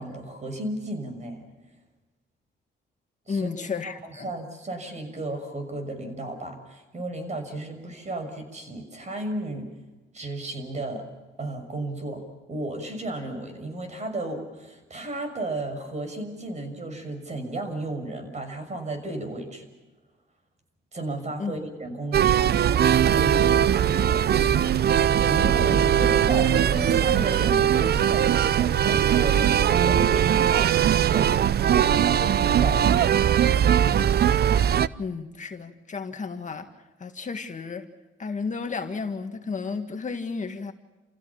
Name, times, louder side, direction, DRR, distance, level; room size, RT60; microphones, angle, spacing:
voice 1, 0.0-1.4 3.3-3.5 3.8-9.7 10.1-11.1 11.4-19.7 20.9-22.7 23.1-24.5 24.8-31.3 31.7-32.9 33.6-34.0, right 2 dB, 35° right, 6.4 m, -33 dB
voice 2, 3.3-4.3 21.4-21.5 35.0-36.7 37.0-37.9 38.2-40.7, left 5 dB, 40° left, 1.9 m, -32 dB
sound 1, 22.1-34.9, right 9 dB, 55° right, 0.6 m, -20 dB
28.5 x 16.0 x 7.2 m
cardioid pair, 90°, 20 cm